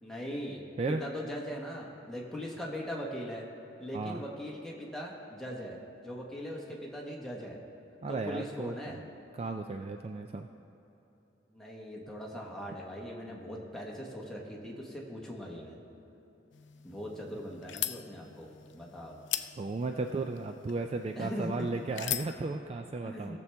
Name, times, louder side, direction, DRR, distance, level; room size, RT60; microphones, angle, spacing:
voice 1, 0.0-3.5 3.8-7.6 8.1-9.0 11.5-15.8 16.8-19.2 21.1-21.7 23.0-23.4, equal, ahead, -3 dB, 1.3 m, -40 dB
voice 2, 8.0-9.0 9.3-10.5 19.6-23.4, right 3 dB, 35° right, 5 dB, 0.3 m, -35 dB
sound 1, 16.5-22.4, left 13 dB, 70° left, 0.4 m, -40 dB
17.5 x 6.9 x 3.4 m, 3.0 s
head